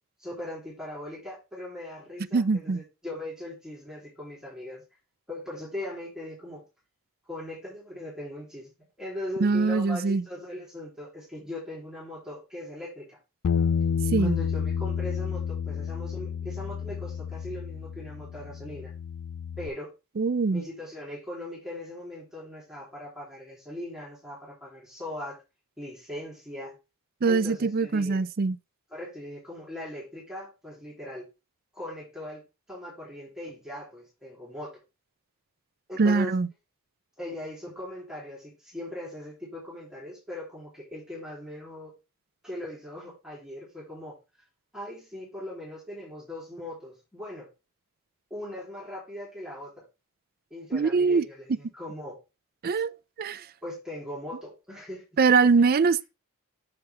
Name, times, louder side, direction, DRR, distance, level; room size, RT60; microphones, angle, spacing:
voice 1, 0.2-4.8 5.3-6.6 7.3-8.7 9.0-13.2 14.2-18.9 19.6-19.9 20.5-25.4 25.8-26.7 27.3-28.2 28.9-31.3 31.7-32.4 32.7-34.8 35.9-36.4 37.2-41.9 42.4-44.2 44.7-47.5 48.3-49.8 50.5-52.2 53.6-55.0 55.6-55.7, left 1 dB, 5° right, 3.4 m, -39 dB
voice 2, 2.3-2.8 9.4-10.2 14.1-14.4 20.2-20.6 27.2-28.6 36.0-36.5 50.7-51.2 52.6-53.4 55.2-56.0, right 4 dB, 40° right, 0.4 m, -23 dB
Bass guitar, 13.4-19.7, left 7 dB, 70° left, 0.4 m, -30 dB
7.0 x 6.6 x 3.5 m
head